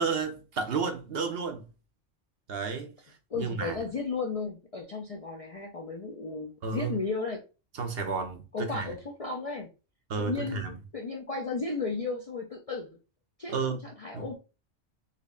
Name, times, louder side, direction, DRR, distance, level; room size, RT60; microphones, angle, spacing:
voice 1, 0.0-1.6 2.5-2.9 3.3-3.8 6.6-7.0 7.7-8.9 10.1-10.7 13.5-13.9 14.1-14.3, right 5 dB, 60° right, 0.8 m, -32 dB
voice 2, 3.3-7.4 8.5-9.7 10.2-10.6 10.9-13.0 13.4-14.3, left 4 dB, 50° left, 0.4 m, -34 dB
4.1 x 3.0 x 2.4 m
omnidirectional pair, 1.2 m